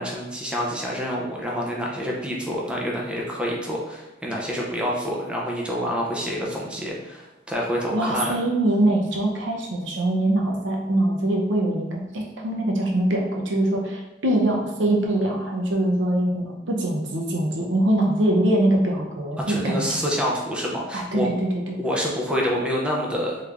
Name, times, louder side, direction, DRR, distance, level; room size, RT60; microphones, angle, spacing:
voice 1, 0.0-8.3 19.4-21.3 21.8-23.4, equal, 5° right, -3 dB, 0.4 m, -27 dB
voice 2, 7.9-20.1 20.9-21.8, right 1 dB, 75° right, 0 dB, 0.6 m, -23 dB
3.1 x 2.5 x 3.3 m, 1.0 s
head